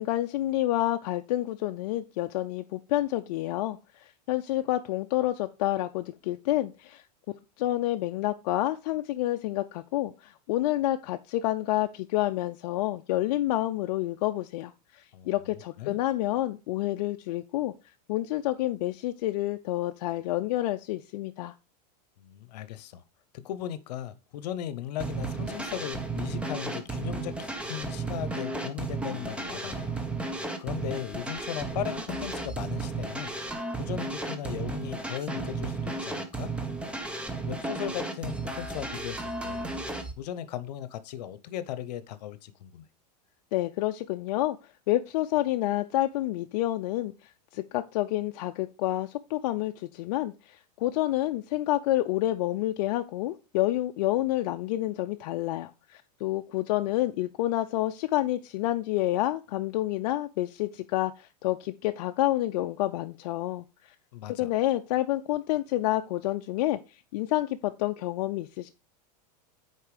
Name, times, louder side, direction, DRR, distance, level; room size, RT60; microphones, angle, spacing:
voice 1, 0.0-7.0 7.6-17.7 18.1-21.5 43.5-44.6 44.9-47.1 47.5-63.9 64.3-68.7, left 15 dB, 60° left, 0.5 m, -29 dB
voice 2, 22.2-23.0 23.3-30.0 30.6-33.3 33.8-36.5 37.5-39.7 40.2-42.8 64.1-64.5, left 11 dB, 75° left, 0.8 m, -37 dB
sound 1, 25.0-40.1, right 3 dB, 5° right, 0.7 m, -34 dB
6.6 x 4.5 x 4.9 m
supercardioid pair, 145°, 21 cm